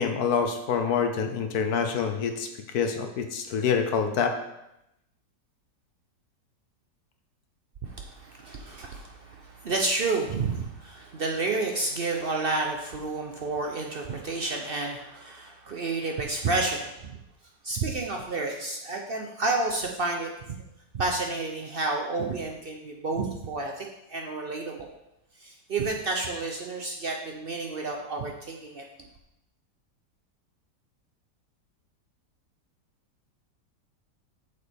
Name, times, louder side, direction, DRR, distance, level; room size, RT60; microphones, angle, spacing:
voice 1, 0.0-2.5 2.7-4.3, left 6 dB, 65° left, 6 dB, 1.2 m, -26 dB
voice 2, 7.8-17.2 17.6-20.5 20.9-24.9 25.4-28.8, right 3 dB, 65° right, 2 dB, 0.5 m, -30 dB
8.4 x 6.8 x 3.4 m, 0.87 s
omnidirectional pair, 1.9 m